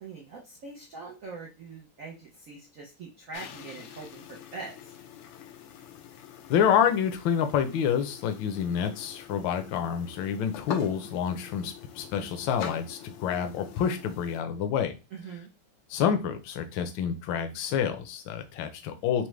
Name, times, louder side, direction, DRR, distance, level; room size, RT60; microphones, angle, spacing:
voice 1, 0.0-4.7 15.1-15.5, right 4 dB, 80° right, -1 dB, 0.7 m, -43 dB
sound 1, 3.3-14.4, left 9 dB, 90° left, 1.6 m, -44 dB
voice 2, 6.5-14.9 15.9-19.3, left 8 dB, 70° left, 7 dB, 1.3 m, -28 dB
6.0 x 2.1 x 3.2 m, 0.29 s
omnidirectional pair, 2.4 m